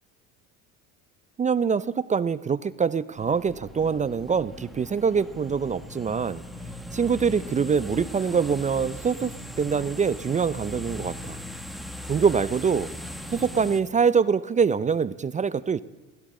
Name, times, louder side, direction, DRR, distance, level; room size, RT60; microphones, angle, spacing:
voice 1, 1.4-6.4 6.9-9.3 9.6-11.4 12.1-12.9 13.3-15.8, right 6 dB, 20° right, 17 dB, 0.4 m, -24 dB
sound 1, 3.2-13.8, equal, ahead, 1.8 m, -39 dB
23.5 x 16.5 x 3.8 m, 1.3 s
supercardioid pair, 90°, 39 cm